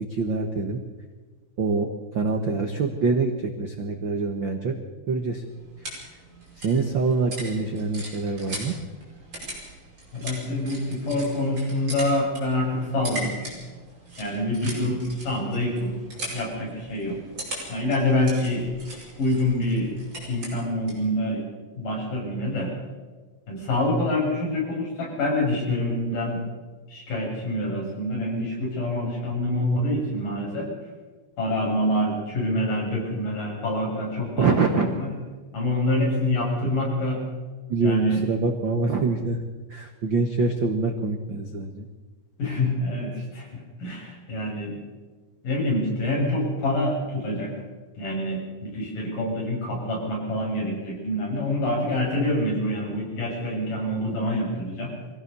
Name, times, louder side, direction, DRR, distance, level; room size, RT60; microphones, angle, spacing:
voice 1, 0.1-0.8 1.6-1.9 2.1-4.7 5.1-5.4 5.9-6.0 6.6-8.7 34.4-34.9 37.7-39.4 39.7-41.9, right 4 dB, 75° right, 4 dB, 1.1 m, -25 dB
sound 1, 5.2-21.1, right 1 dB, 30° right, 7.2 m, -40 dB
voice 2, 10.1-13.3 14.2-16.0 16.3-17.2 17.7-18.7 19.2-19.9 20.3-21.4 21.8-22.7 23.5-26.4 26.9-30.7 31.4-35.1 35.5-37.2 37.8-38.2 42.4-44.8 45.4-47.5 48.0-54.9, left 1 dB, 60° left, -3 dB, 8.2 m, -26 dB
23.5 x 16.0 x 6.9 m, 1.4 s
omnidirectional pair, 4.3 m